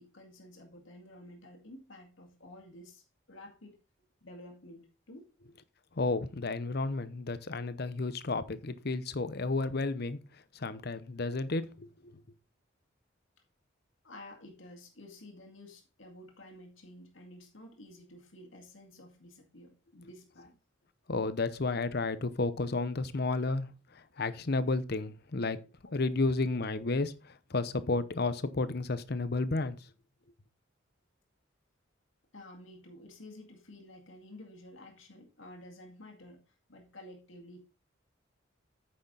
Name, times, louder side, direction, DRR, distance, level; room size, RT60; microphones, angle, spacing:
voice 1, 0.0-3.8 4.2-5.3 14.0-20.5 25.8-26.1 32.3-37.6, left 1 dB, 80° left, 2.1 m, -51 dB
voice 2, 6.0-10.2 10.5-12.2 21.1-25.6 25.9-29.8, left 3 dB, 55° left, 0.8 m, -32 dB
9.3 x 6.5 x 3.9 m
head